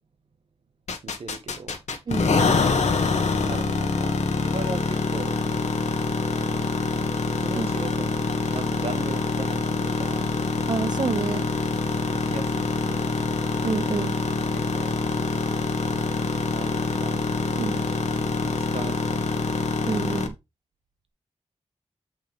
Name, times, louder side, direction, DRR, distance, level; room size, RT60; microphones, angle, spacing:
sound 1, 0.9-20.3, left 4 dB, 90° left, 1.7 m, -25 dB
voice 1, 1.0-1.8 3.4-5.4 6.1-6.9 7.3-10.3 12.2-13.3 14.5-15.0 16.5-17.3 18.4-19.4, right 4 dB, 60° right, 1.6 m, -39 dB
voice 2, 10.7-11.5 13.6-14.1 17.6-17.8 19.8-20.4, right 5 dB, 40° right, 0.4 m, -28 dB
8.2 x 5.8 x 3.4 m
wide cardioid pair, 150°, 12 cm